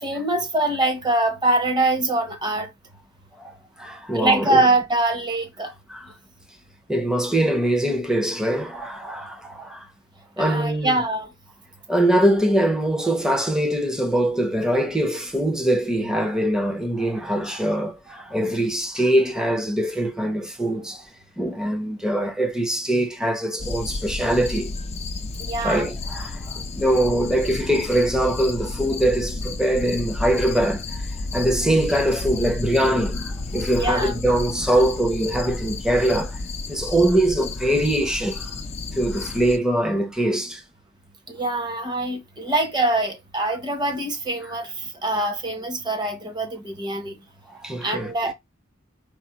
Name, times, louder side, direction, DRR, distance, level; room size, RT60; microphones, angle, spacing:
voice 1, 0.0-2.7 4.1-5.7 10.4-11.3 25.4-25.9 28.2-28.3 33.7-34.2 41.3-47.2 47.8-48.3, right 2 dB, 20° right, 1.0 m, -24 dB
voice 2, 3.3-4.7 5.9-6.1 6.9-9.9 10.4-11.0 11.9-21.1 21.4-24.7 25.6-36.4 36.7-38.5 38.9-40.6 47.5-48.3, right 1 dB, 5° right, 0.7 m, -23 dB
sound 1, 23.6-39.6, left 3 dB, 30° left, 0.4 m, -31 dB
4.8 x 2.1 x 4.2 m
head